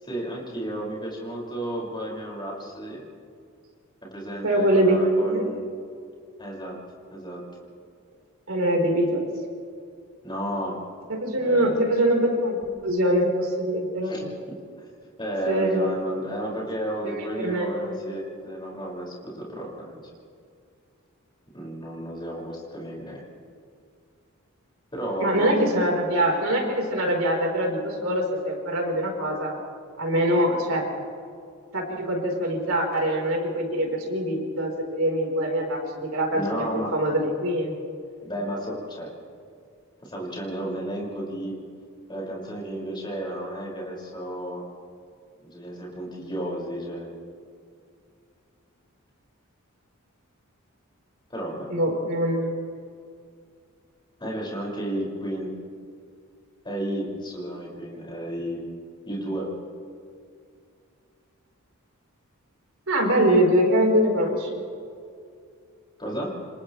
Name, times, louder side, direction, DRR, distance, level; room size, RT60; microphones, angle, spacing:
voice 1, 0.0-3.0 4.0-5.6 6.4-6.7 7.1-7.4 10.2-10.8 11.4-11.7 14.0-14.3 14.8-14.9 15.2-20.0 21.5-23.2 24.9-25.8 36.3-36.9 38.2-39.1 40.0-41.5 42.1-44.6 45.4-47.1 51.3-51.7 54.2-55.5 56.6-58.6 59.1-59.5 66.0-66.3, right 1 dB, 20° left, -4 dB, 6.4 m, -32 dB
voice 2, 4.4-5.5 8.5-9.3 11.1-14.1 15.5-15.9 17.0-18.0 25.2-29.5 30.0-30.9 31.7-37.8 51.7-52.7 62.9-64.5, right 1 dB, 75° right, -1 dB, 4.8 m, -23 dB
29.0 x 26.0 x 3.4 m, 2.3 s
head